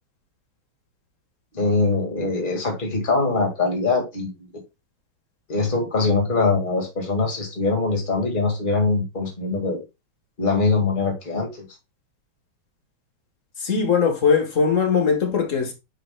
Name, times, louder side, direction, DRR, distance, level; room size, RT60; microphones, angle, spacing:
voice 1, 1.5-4.3 5.5-9.8 10.4-11.7, left 3 dB, 25° left, 1.9 m, -22 dB
voice 2, 13.6-15.7, left 6 dB, 45° left, 1.5 m, -20 dB
10.0 x 5.0 x 2.2 m
omnidirectional pair, 2.2 m